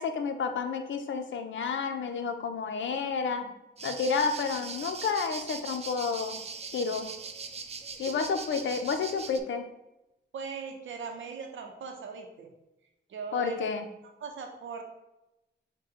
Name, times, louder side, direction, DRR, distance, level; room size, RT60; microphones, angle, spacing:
voice 1, 0.0-3.5 3.8-6.4 6.7-7.1 8.0-9.7 13.3-13.9, left 5 dB, 80° left, 6 dB, 0.5 m, -30 dB
sound 1, 3.8-9.4, right 5 dB, 35° right, 0.4 m, -40 dB
voice 2, 10.3-12.5 13.1-13.6 14.2-14.8, right 5 dB, 90° right, 4 dB, 0.7 m, -39 dB
5.9 x 2.2 x 3.6 m, 0.93 s
cardioid pair, 75°, 19 cm